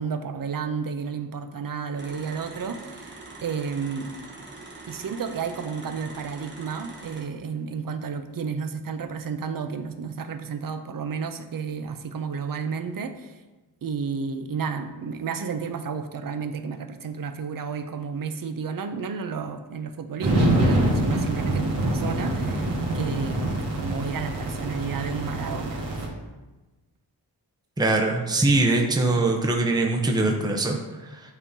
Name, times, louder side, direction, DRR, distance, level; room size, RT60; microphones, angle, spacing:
voice 1, 0.0-3.1 3.4-4.1 4.9-13.4 13.8-23.4 23.7-25.8, right 6 dB, 50° right, 8 dB, 0.6 m, -32 dB
sound 1, 2.0-7.2, right 3 dB, 25° right, 1.1 m, -43 dB
sound 2, 20.2-26.1, right 1 dB, 80° right, 1.8 m, -25 dB
voice 2, 27.8-31.2, right 2 dB, 10° right, 1 dB, 0.7 m, -22 dB
10.5 x 3.7 x 2.7 m, 1.1 s
wide cardioid pair, 110°, 43 cm